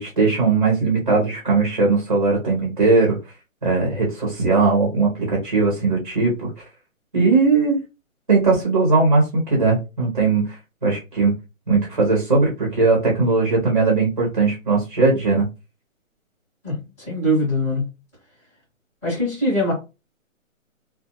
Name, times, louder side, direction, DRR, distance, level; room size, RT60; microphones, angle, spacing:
voice 1, 0.0-3.2 3.6-6.6 7.1-7.8 8.3-11.3 11.7-15.5, right 3 dB, 30° right, 0.7 m, -19 dB
voice 2, 16.6-17.9 19.0-19.7, equal, 10° left, 1.0 m, -22 dB
2.6 x 2.0 x 2.8 m
hypercardioid pair, 175°, 41 cm